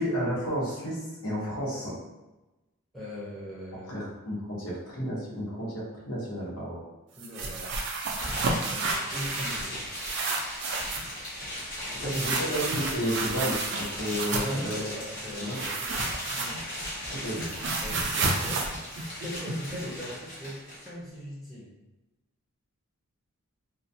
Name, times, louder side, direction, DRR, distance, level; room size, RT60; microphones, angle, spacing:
voice 1, 0.0-1.9 3.9-6.8 12.0-14.8 15.3-15.6 15.9-16.0 17.1-17.5, equal, 80° left, -5 dB, 0.9 m, -32 dB
voice 2, 2.9-4.1 7.2-7.8 8.5-9.8 11.8-12.4 14.4-15.8 16.3-16.6 17.8-18.7 19.2-21.7, equal, ahead, -9 dB, 0.5 m, -39 dB
sound 1, 7.2-9.7 9.9-11.1 12.1-14.6 15.5-16.8 17.1-19.8, right 3 dB, 50° right, 0.3 m, -31 dB
sound 2, 8.1-20.9, left 1 dB, 40° left, 1.0 m, -37 dB
2.2 x 2.2 x 2.6 m, 1.0 s
head